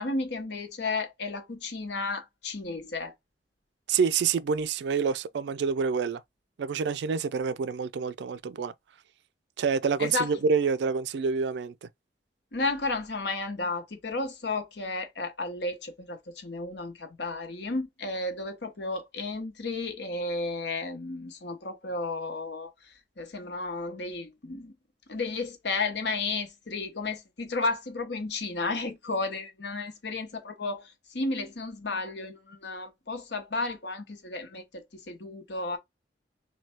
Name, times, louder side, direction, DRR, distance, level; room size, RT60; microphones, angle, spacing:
voice 1, 0.0-3.1 10.0-10.3 12.5-22.7 23.2-24.7 25.1-35.8, left 3 dB, 65° left, 0.9 m, -33 dB
voice 2, 3.9-6.2 6.6-8.7 9.6-11.9, right 5 dB, 65° right, 0.3 m, -27 dB
3.2 x 2.3 x 4.3 m
head